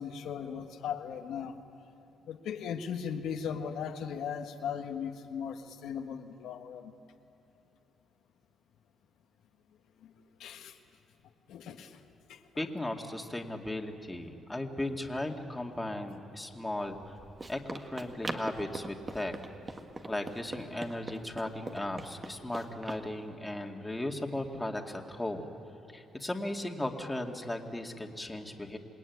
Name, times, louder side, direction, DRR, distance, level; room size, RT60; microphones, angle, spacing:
voice 1, 0.0-1.6 2.3-6.9 10.4-10.7 11.5-11.9 12.3-12.4, left 7 dB, 80° left, 4 dB, 1.4 m, -37 dB
voice 2, 12.6-17.2 17.5-19.3 20.1-25.5 25.9-28.8, left 1 dB, 10° left, 2 dB, 2.3 m, -36 dB
Run, 16.8-23.0, right 2 dB, 25° right, 1.7 m, -42 dB
27.0 x 20.5 x 9.5 m, 2.8 s
cardioid pair, 90°, 0 cm